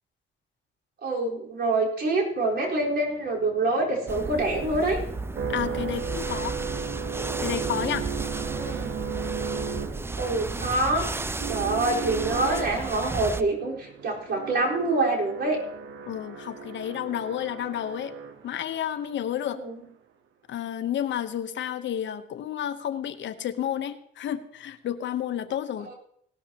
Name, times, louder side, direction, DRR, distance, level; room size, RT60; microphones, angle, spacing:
voice 1, 1.0-5.0 8.4-9.0 10.2-11.1 11.5-15.6 19.4-19.8 25.8-25.9, right 2 dB, 60° right, -2 dB, 4.3 m, -26 dB
sound 1, 2.5-18.8, right 6 dB, 80° right, 1.2 m, -36 dB
sound 2, 4.1-13.4, right 3 dB, 10° right, 0.5 m, -33 dB
voice 2, 5.5-6.5 7.4-8.0 16.1-18.1 18.4-19.6 20.5-25.9, left 10 dB, 65° left, 10 dB, 1.0 m, -31 dB
18.0 x 12.5 x 2.9 m, 0.67 s
cardioid pair, 90°, 20 cm